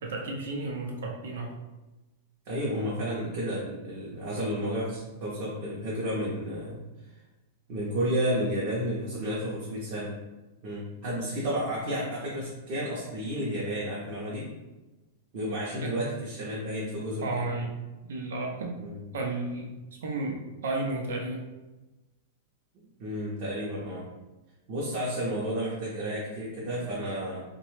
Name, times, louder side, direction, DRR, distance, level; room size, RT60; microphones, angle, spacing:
voice 1, 0.0-1.5 15.8-16.2 17.2-17.7 18.1-18.8 19.1-21.4, right 2 dB, 85° right, 1 dB, 0.6 m, -33 dB
voice 2, 2.5-6.8 7.1-7.2 7.7-10.1 10.6-14.5 15.3-17.2 18.8-19.0 23.0-24.1 24.7-27.4, equal, 35° right, -7 dB, 0.6 m, -31 dB
2.9 x 2.2 x 3.1 m, 1.1 s
supercardioid pair, 175°, 0 cm